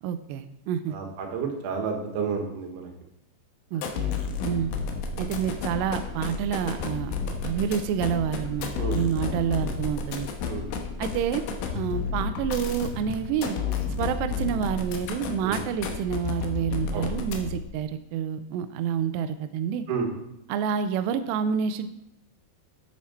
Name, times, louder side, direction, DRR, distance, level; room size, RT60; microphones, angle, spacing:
voice 1, 0.0-1.0 3.7-4.1 4.4-4.8 5.2-10.3 11.0-11.4 11.7-13.6 14.0-19.8 20.5-21.9, right 8 dB, 85° right, 10 dB, 2.4 m, -28 dB
voice 2, 0.9-2.9 8.7-9.4 10.5-10.7 15.4-15.6 16.9-17.1 19.9-20.1, right 5 dB, 65° right, 3 dB, 3.1 m, -31 dB
sound 1, 3.7-17.7, left 5 dB, 85° left, 3.4 m, -32 dB
9.6 x 7.2 x 4.3 m, 0.79 s
omnidirectional pair, 5.4 m